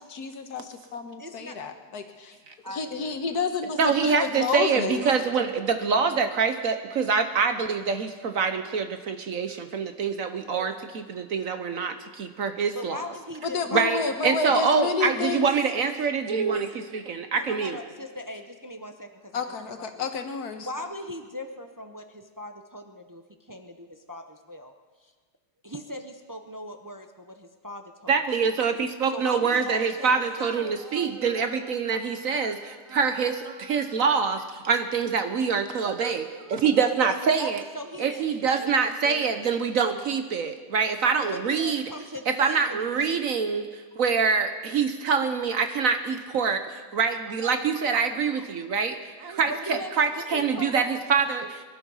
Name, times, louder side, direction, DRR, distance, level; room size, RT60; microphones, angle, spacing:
voice 1, 0.0-2.3 2.7-5.0 13.4-15.5 19.3-20.7, left 5 dB, 65° left, 7 dB, 1.7 m, -30 dB
voice 2, 1.2-1.6 2.6-3.2 3.5-3.6 12.7-14.8 17.3-19.4 19.9-20.1 20.6-24.7 25.0-25.1 25.6-28.1 29.1-30.6 37.4-39.3 41.3-43.2 48.4-48.5 49.5-49.9 50.3-51.0, left 1 dB, 30° right, 5 dB, 0.3 m, -39 dB
voice 3, 3.8-13.0 13.7-17.8 28.1-37.6 38.0-41.8 42.3-51.6, right 5 dB, 60° right, 8 dB, 1.1 m, -25 dB
23.0 x 11.0 x 5.5 m, 1.4 s
omnidirectional pair, 1.8 m